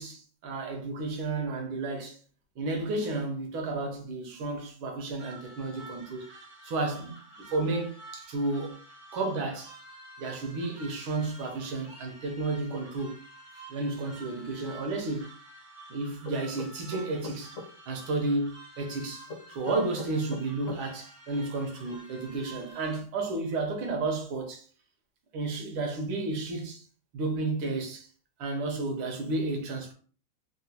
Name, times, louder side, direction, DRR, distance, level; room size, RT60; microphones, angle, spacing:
voice 1, 0.0-2.2 2.6-6.2 6.6-8.8 9.1-9.7 10.2-13.2 13.7-15.3 15.9-17.6 17.9-24.7 25.3-26.8 27.1-28.1 28.4-29.9, right 3 dB, 80° right, 1.7 m, -32 dB
sound 1, 5.2-23.0, right 2 dB, 50° right, 0.7 m, -50 dB
sound 2, 16.2-17.7 19.3-20.8, left 3 dB, 50° left, 1.2 m, -40 dB
4.0 x 2.2 x 2.8 m
omnidirectional pair, 2.3 m